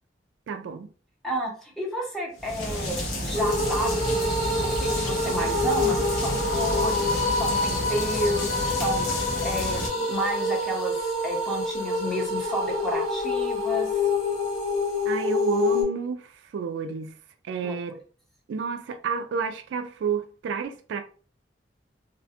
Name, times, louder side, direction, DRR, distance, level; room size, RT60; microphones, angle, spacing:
voice 1, 0.5-0.9 15.0-16.3 16.5-17.1 17.4-18.0 18.5-21.0, right 6 dB, 80° right, 0.3 m, -30 dB
voice 2, 1.2-4.1 4.6-13.9 17.6-18.0, equal, ahead, 0.7 m, -31 dB
sound 1, 2.4-9.9, equal, 60° left, 0.9 m, -31 dB
sound 2, 3.3-15.8, left 2 dB, 40° left, 1.3 m, -27 dB
2.4 x 2.2 x 2.7 m
head